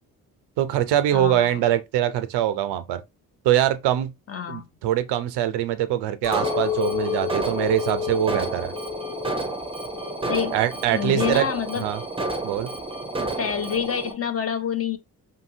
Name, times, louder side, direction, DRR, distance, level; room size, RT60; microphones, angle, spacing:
voice 1, 0.6-3.0 3.4-4.1 4.5-8.7 10.5-11.5 11.8-12.0 12.4-12.7, right 12 dB, 75° right, 0.5 m, -23 dB
voice 2, 1.1-1.6 4.3-4.7 10.3-10.6 10.9-11.9 13.4-15.0, left 8 dB, 35° left, 0.6 m, -27 dB
Chink clink, 6.2-10.6 11.0-11.6, left 11 dB, 80° left, 0.7 m, -31 dB
Alarm, 6.3-14.1, right 2 dB, 15° right, 0.6 m, -31 dB
2.8 x 2.7 x 2.6 m
hypercardioid pair, 45°, 40 cm